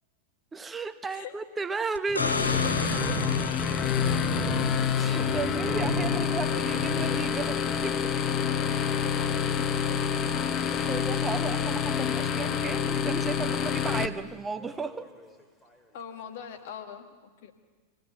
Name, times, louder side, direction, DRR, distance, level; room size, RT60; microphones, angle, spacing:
voice 1, 0.5-2.8 3.1-3.2 4.9-8.1 10.2-15.1, right 4 dB, 15° right, 11 dB, 0.9 m, -35 dB
sound 1, 2.0-4.8 7.6-7.7, left 3 dB, 80° left, 0.6 m, -34 dB
sound 2, 2.1-11.5 12.3-12.8 13.2-13.3 13.6-13.7 14.6-15.7, right 4 dB, 10° left, 2.4 m, -39 dB
sound 3, 2.2-14.1, left 7 dB, 30° left, 0.9 m, -27 dB
voice 2, 5.9-6.2 6.5-6.6 8.8-9.6 15.9-17.5, left 8 dB, 50° left, 6 dB, 1.8 m, -43 dB
25.5 x 16.0 x 7.0 m, 1.4 s
figure-of-eight pair, 90°, 0 cm